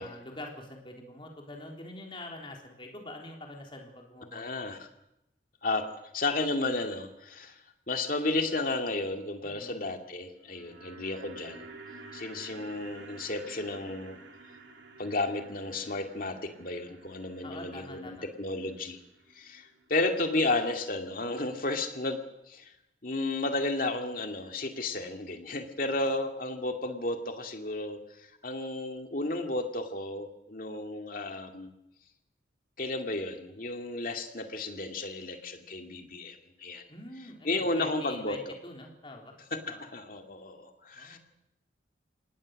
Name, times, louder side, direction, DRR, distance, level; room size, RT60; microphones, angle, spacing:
voice 1, 0.0-4.7 9.4-9.7 17.4-18.3 36.9-39.3 39.6-39.9 40.9-41.2, left 1 dB, 30° left, 1 dB, 3.8 m, -45 dB
voice 2, 4.3-4.8 5.6-7.5 7.9-11.7 12.1-14.2 15.0-19.0 19.3-22.2 22.5-22.7 23.0-28.0 28.4-31.7 32.8-36.8 37.4-38.5 39.7-41.2, left 2 dB, 50° left, 5 dB, 2.3 m, -33 dB
sound 1, 10.3-20.6 20.8-20.9, right 3 dB, 85° right, 3.0 m, -51 dB
25.5 x 18.5 x 6.5 m, 0.86 s
head